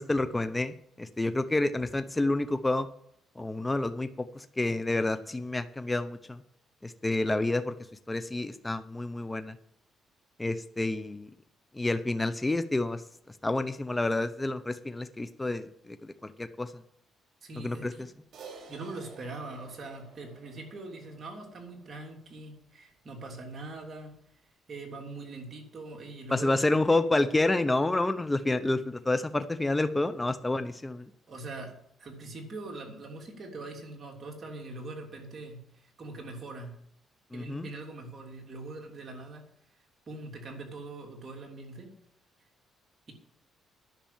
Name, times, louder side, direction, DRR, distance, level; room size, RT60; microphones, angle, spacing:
voice 1, 0.0-2.9 3.4-6.4 6.8-7.7 8.1-9.6 10.4-11.3 11.7-13.0 13.3-16.8 17.5-18.1 26.3-31.1 37.3-37.7, left 2 dB, 15° left, 11 dB, 0.8 m, -29 dB
voice 2, 17.4-18.1 18.7-24.1 24.7-27.0 31.3-31.7 32.0-36.7 37.3-39.4 40.1-41.9, right 2 dB, 45° right, 1 dB, 3.2 m, -42 dB
Crash cymbal, 18.3-22.9, right 4 dB, 60° right, 3.5 m, -52 dB
10.5 x 6.8 x 8.8 m, 0.72 s
cardioid pair, 90°, 0 cm